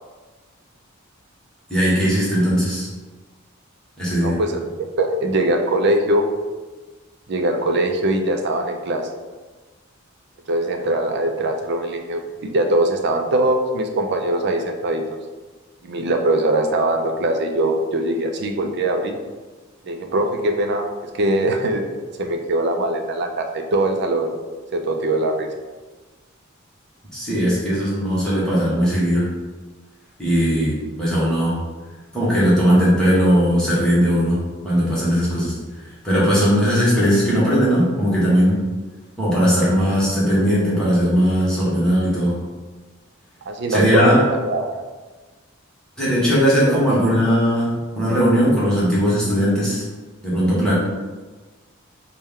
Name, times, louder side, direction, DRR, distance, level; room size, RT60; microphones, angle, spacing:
voice 1, 1.7-2.9 4.0-4.4 27.1-29.3 30.2-31.6 32.1-34.4 34.6-38.6 39.2-42.4 43.7-44.2 46.0-49.8 50.2-50.7, equal, 5° left, -9 dB, 1.1 m, -18 dB
voice 2, 4.2-6.3 7.3-9.1 10.5-15.0 15.8-19.2 19.9-20.9 21.1-21.8 22.2-24.4 24.7-25.5 43.5-44.8 46.7-46.8, right 1 dB, 55° right, 4 dB, 0.5 m, -21 dB
4.2 x 2.2 x 3.5 m, 1.3 s
head